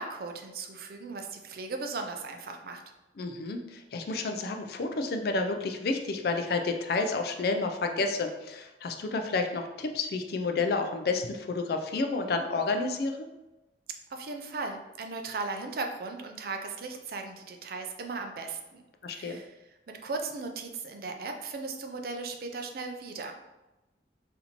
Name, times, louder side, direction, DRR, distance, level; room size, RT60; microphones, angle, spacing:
voice 1, 0.0-2.8 14.1-18.8 19.1-19.6 20.0-23.3, right 3 dB, 55° right, 4 dB, 0.4 m, -37 dB
voice 2, 3.2-13.3 19.0-19.4, left 3 dB, 60° left, 5 dB, 0.4 m, -30 dB
4.2 x 2.7 x 2.8 m, 1.0 s
head